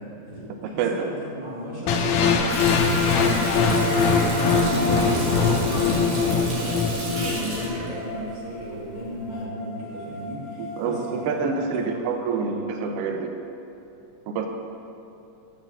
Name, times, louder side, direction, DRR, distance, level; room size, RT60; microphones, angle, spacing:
voice 1, 0.0-12.6, equal, 20° right, -8 dB, 1.7 m, -35 dB
voice 2, 0.6-1.1 10.6-13.3 14.3-14.5, right 5 dB, 75° right, 4 dB, 1.4 m, -27 dB
sound 1, 1.9-7.9, left 4 dB, 75° left, 1.9 m, -22 dB
Water tap faucet, 2.5-8.9 9.3-9.4, right 1 dB, 50° right, 2.1 m, -32 dB
sound 2, 5.7-11.7, left 2 dB, 45° left, 1.2 m, -41 dB
6.6 x 6.0 x 7.2 m, 2.7 s
omnidirectional pair, 3.4 m